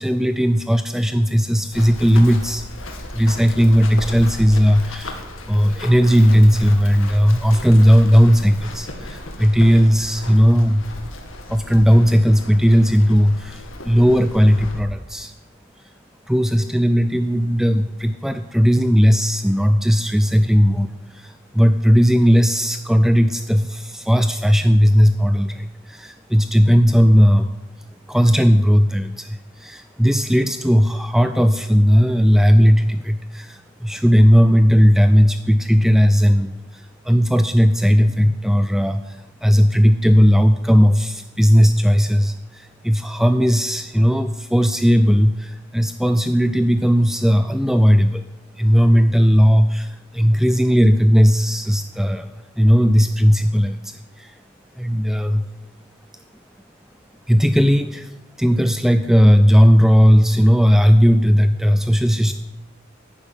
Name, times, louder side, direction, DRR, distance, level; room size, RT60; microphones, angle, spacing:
voice 1, 0.0-2.6 3.1-10.8 11.5-15.3 16.3-27.5 28.1-48.3 48.6-52.3 52.6-54.4 54.8-55.5 57.3-58.1 58.4-62.3, equal, ahead, 9 dB, 0.5 m, -16 dB
Run, 1.7-14.8, left 1 dB, 80° left, 2.2 m, -35 dB
11.5 x 10.5 x 9.1 m, 1.1 s
head